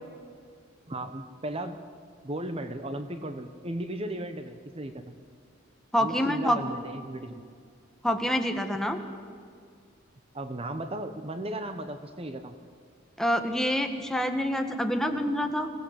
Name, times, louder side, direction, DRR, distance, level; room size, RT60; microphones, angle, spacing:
voice 1, 0.9-1.8 2.2-5.1 6.0-7.4 10.3-12.6, right 1 dB, 30° right, 8 dB, 1.0 m, -36 dB
voice 2, 5.9-6.6 8.0-9.0 13.2-15.7, equal, ahead, 5 dB, 1.5 m, -26 dB
25.5 x 17.0 x 8.2 m, 2.1 s
head